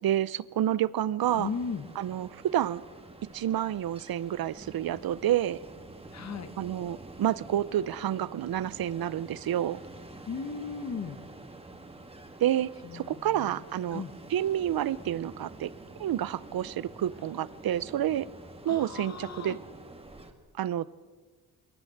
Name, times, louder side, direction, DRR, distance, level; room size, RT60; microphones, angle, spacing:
voice 1, 0.0-1.5 2.0-2.8 3.3-5.6 6.6-9.8 12.4-14.0 14.3-15.7 16.0-18.3 18.6-19.6 20.6-20.9, right 11 dB, 70° right, 19 dB, 0.7 m, -29 dB
Ocean, 1.2-20.3, right 2 dB, 15° right, 1.8 m, -48 dB
voice 2, 1.4-1.9 6.1-6.5 10.3-11.2 12.8-13.6 13.9-14.1 18.7-19.6, left 5 dB, 45° left, 9 dB, 1.6 m, -37 dB
23.5 x 17.5 x 7.9 m, 1.4 s
wide cardioid pair, 165°, 38 cm